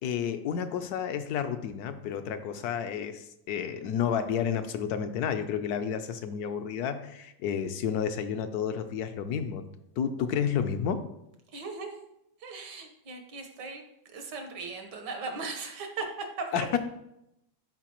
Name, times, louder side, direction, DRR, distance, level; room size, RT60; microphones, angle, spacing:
voice 1, 0.0-9.6 10.0-11.0 16.5-16.8, left 8 dB, 75° left, 9 dB, 1.1 m, -31 dB
voice 2, 11.5-12.0 12.4-13.8 14.1-16.1 16.4-16.7, right 4 dB, 85° right, 4 dB, 1.8 m, -38 dB
12.0 x 4.6 x 3.0 m, 0.82 s
omnidirectional pair, 1.8 m